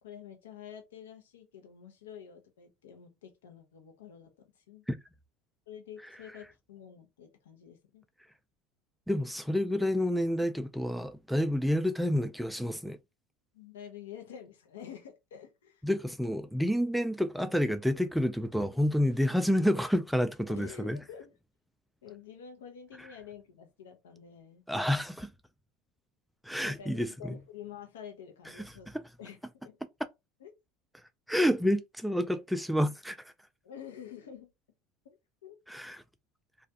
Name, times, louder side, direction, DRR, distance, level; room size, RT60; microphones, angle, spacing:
voice 1, 0.0-4.8 5.7-8.0 13.5-15.8 20.5-21.4 22.0-24.6 26.6-28.9 29.2-29.8 30.4-30.5 33.6-34.5 35.4-35.6, left 8 dB, 85° left, 0.8 m, -48 dB
voice 2, 9.1-13.0 15.8-21.0 24.7-25.3 26.4-27.1 28.9-29.0 31.3-33.3 35.7-36.0, equal, ahead, 0.3 m, -29 dB
2.3 x 2.3 x 2.7 m
hypercardioid pair, 80°, 0 cm